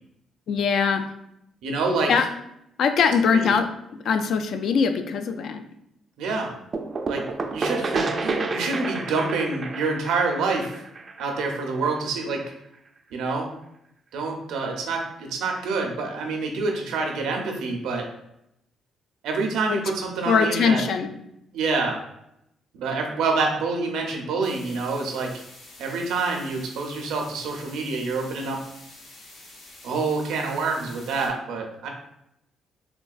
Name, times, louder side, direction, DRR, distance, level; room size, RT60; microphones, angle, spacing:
voice 1, 0.5-1.1 2.1-2.3 2.8-3.7 4.0-5.6 19.7-19.8 20.3-21.1, left 6 dB, 70° left, 7 dB, 0.3 m, -21 dB
voice 2, 1.6-2.1 3.3-3.4 6.2-6.5 7.1-7.2 7.5-10.7 11.2-12.4 13.1-13.5 14.1-18.1 19.2-20.8 21.5-22.0 22.7-25.3 25.8-28.6 29.8-31.9, right 3 dB, 90° right, 2 dB, 0.6 m, -27 dB
sound 1, 6.7-12.3, right 3 dB, 40° right, 0.3 m, -30 dB
sound 2, 24.4-31.3, left 2 dB, 85° left, 0.8 m, -47 dB
3.7 x 2.2 x 2.4 m, 0.79 s
cardioid pair, 90°, 0 cm